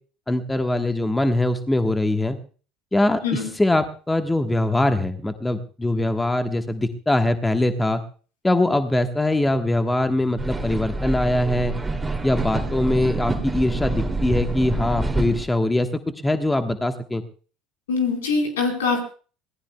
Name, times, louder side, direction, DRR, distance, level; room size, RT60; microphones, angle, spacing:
voice 1, 0.3-2.4 2.9-8.0 8.4-11.7 12.2-15.9 16.2-17.2, left 1 dB, 10° left, 7 dB, 1.3 m, -22 dB
sound 1, 10.4-15.5, right 2 dB, 15° right, 2.7 m, -27 dB
voice 2, 17.9-19.0, left 4 dB, 80° left, 4 dB, 4.4 m, -23 dB
26.0 x 18.0 x 2.3 m, 0.39 s
hypercardioid pair, 70°, 0 cm